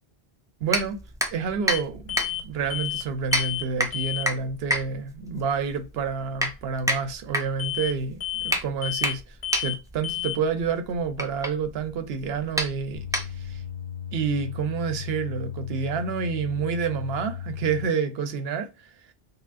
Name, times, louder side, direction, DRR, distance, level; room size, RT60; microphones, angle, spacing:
voice 1, 0.6-1.0 1.3-13.6 14.1-18.7, right 5 dB, 80° right, 0.8 m, -29 dB
sound 1, 0.7-13.7, equal, 5° right, 0.3 m, -31 dB
sound 2, 1.7-1.8 2.1-2.4 2.7-3.1 3.3-3.7 3.9-4.3 7.6-7.9 8.2-8.6 8.8-9.2 9.4-9.8 10.0-10.4, left 13 dB, 80° left, 0.9 m, -31 dB
sound 3, 12.9-17.9, left 9 dB, 60° left, 1.2 m, -36 dB
5.6 x 2.1 x 2.4 m
omnidirectional pair, 1.0 m